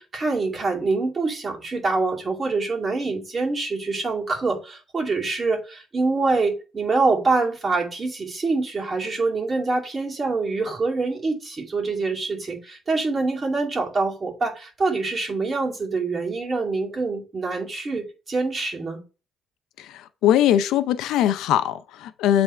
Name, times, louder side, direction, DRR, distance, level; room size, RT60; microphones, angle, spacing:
voice 1, 0.0-19.0, right 3 dB, 35° right, 2.4 m, -25 dB
voice 2, 19.8-22.4, left 11 dB, 90° left, 0.5 m, -21 dB
8.1 x 3.5 x 4.3 m
cardioid pair, 90°, 0 cm